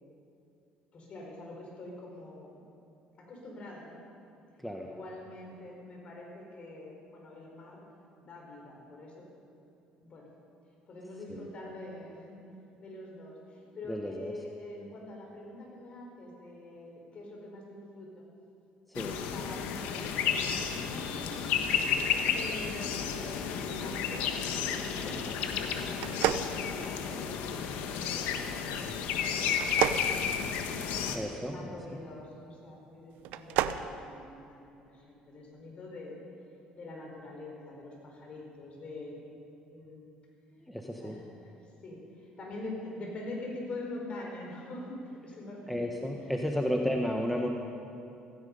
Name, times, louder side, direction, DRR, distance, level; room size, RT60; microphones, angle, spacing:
voice 1, 0.9-2.6 3.2-4.0 4.9-7.8 8.2-9.3 10.0-10.3 10.9-18.2 19.0-21.5 22.3-30.7 31.5-36.2 36.7-39.2 39.7-40.0 41.0-45.7 46.2-46.6, left 2 dB, 45° left, -1 dB, 4.9 m, -45 dB
voice 2, 13.9-14.3 18.9-19.1 31.1-32.0 40.6-41.2 45.7-47.5, equal, ahead, 1 dB, 1.2 m, -33 dB
sound 1, 18.9-31.2, left 7 dB, 85° left, 1.3 m, -32 dB
sound 2, 26.0-27.3 29.5-31.1 33.2-33.8, right 12 dB, 85° right, 0.6 m, -31 dB
16.0 x 16.0 x 5.6 m, 2.6 s
cardioid pair, 105°, 3 cm